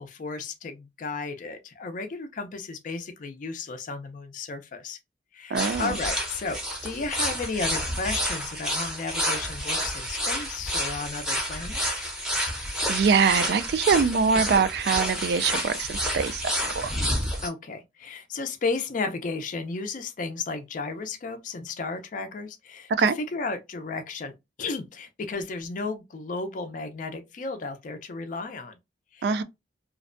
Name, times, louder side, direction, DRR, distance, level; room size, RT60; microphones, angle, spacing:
voice 1, 0.0-5.0 5.3-12.1 17.4-24.3 24.6-28.8 29.1-29.4, left 4 dB, 45° left, 0.4 m, -34 dB
voice 2, 5.5-6.0 12.9-16.4 16.7-16.9 22.9-23.1 29.2-29.4, right 5 dB, 65° right, 0.3 m, -23 dB
sound 1, 5.6-17.5, equal, 5° right, 0.6 m, -29 dB
2.5 x 2.1 x 2.5 m
head